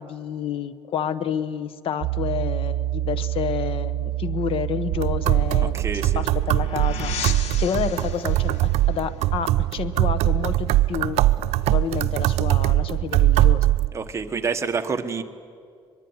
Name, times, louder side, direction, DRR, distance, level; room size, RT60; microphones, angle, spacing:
voice 1, 0.0-5.8 6.1-11.2 11.7-13.7, left 8 dB, 60° left, 14 dB, 1.1 m, -29 dB
Piano, 2.0-7.6, right 14 dB, 65° right, 1.0 m, -29 dB
sound 1, 4.9-13.9, right 15 dB, 90° right, 0.6 m, -21 dB
voice 2, 5.6-6.2 13.9-15.2, right 5 dB, 25° right, 6 dB, 1.4 m, -28 dB
sound 2, 5.7-10.6, left 7 dB, 90° left, 1.5 m, -37 dB
23.0 x 22.5 x 9.7 m, 2.2 s
cardioid pair, 140°, 11 cm